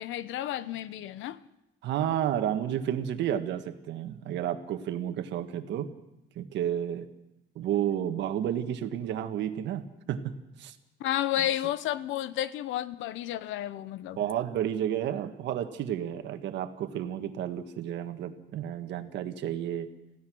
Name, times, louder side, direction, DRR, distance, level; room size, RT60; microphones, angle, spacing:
voice 1, 0.0-1.4 11.0-14.2, left 12 dB, 85° left, 0.9 m, -31 dB
voice 2, 1.8-5.9 6.3-7.1 7.5-10.3 10.6-10.7 11.4-11.5 14.2-19.9, right 10 dB, 65° right, 1.6 m, -31 dB
27.5 x 16.0 x 6.3 m
cardioid pair, 180°, 20 cm